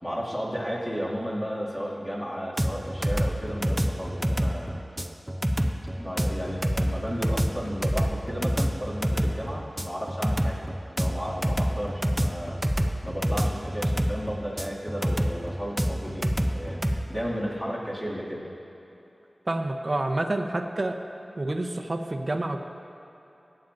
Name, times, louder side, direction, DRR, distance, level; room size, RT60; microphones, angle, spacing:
voice 1, 0.0-4.8 5.9-12.7 13.0-18.4, equal, 15° left, -6 dB, 2.3 m, -34 dB
sound 1, 2.6-17.0, equal, 10° right, 0.6 m, -27 dB
voice 2, 19.5-21.0 21.4-22.6, right 2 dB, 45° right, 4 dB, 0.8 m, -28 dB
20.5 x 8.9 x 2.6 m, 3.0 s
wide cardioid pair, 70°, 0 cm